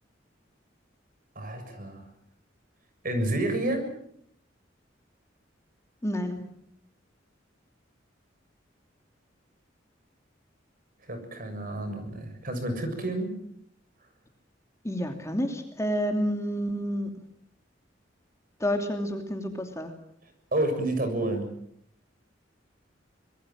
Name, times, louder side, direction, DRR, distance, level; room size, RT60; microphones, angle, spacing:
voice 1, 1.4-2.0 3.0-3.9 11.1-13.4 20.5-21.5, right 1 dB, 50° right, 7 dB, 7.0 m, -29 dB
voice 2, 6.0-6.5 14.8-17.1 18.6-19.9, equal, 15° left, 4 dB, 2.8 m, -29 dB
25.5 x 21.5 x 7.6 m, 0.71 s
head